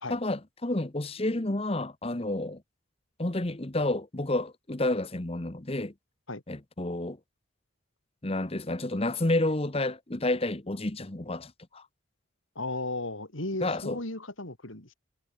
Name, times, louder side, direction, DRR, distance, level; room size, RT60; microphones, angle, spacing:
voice 1, 0.1-2.6 3.2-5.9 6.5-7.2 8.2-11.9 13.6-14.0, left 2 dB, 30° left, 1.1 m, -30 dB
voice 2, 12.6-14.9, left 2 dB, 70° left, 3.8 m, -35 dB
head